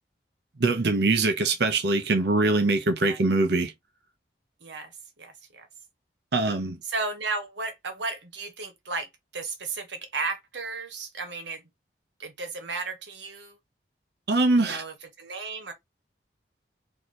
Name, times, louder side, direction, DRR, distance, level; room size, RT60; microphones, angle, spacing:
voice 1, 0.6-3.7 6.3-6.8 14.3-14.8, right 3 dB, 70° right, 0.8 m, -23 dB
voice 2, 4.6-4.9 5.2-5.7 6.8-11.6 12.2-13.6 14.6-15.7, right 3 dB, 85° right, 1.3 m, -34 dB
3.1 x 2.9 x 4.2 m
head